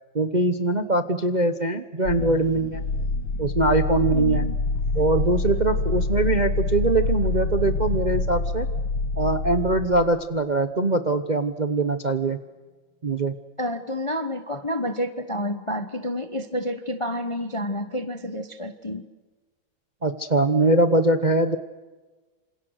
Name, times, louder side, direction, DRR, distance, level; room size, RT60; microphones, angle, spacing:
voice 1, 0.1-2.8 3.4-4.4 4.9-8.7 9.2-12.4 13.0-13.3 20.0-21.6, right 2 dB, 35° right, 9 dB, 0.8 m, -22 dB
sound 1, 2.0-10.2, left 3 dB, 70° left, 2.7 m, -26 dB
voice 2, 4.1-4.5 13.6-19.1, left 1 dB, 25° left, 9 dB, 0.7 m, -29 dB
27.5 x 27.0 x 6.5 m, 1.3 s
omnidirectional pair, 2.2 m